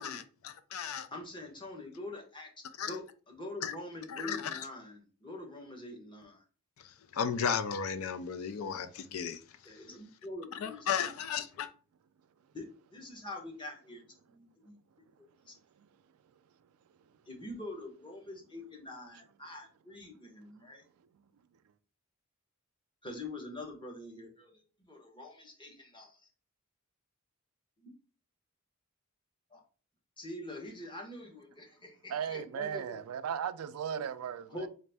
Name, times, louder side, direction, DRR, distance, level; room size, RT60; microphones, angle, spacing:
voice 1, 0.0-1.1 2.8-2.9 3.6-3.7 4.1-4.6 7.1-9.4 10.6-11.7, left 7 dB, 70° left, 0.4 m, -34 dB
voice 2, 1.1-2.5 2.9-6.4 9.6-11.1 12.5-12.7 12.9-14.8 15.5-15.6 17.3-20.8 23.0-26.2 27.8-27.9 29.5-29.6 30.2-33.0 33.9-34.0 34.5-34.7, left 2 dB, 20° left, 1.0 m, -45 dB
voice 3, 32.1-34.7, right 8 dB, 80° right, 0.3 m, -36 dB
4.1 x 2.5 x 3.3 m
head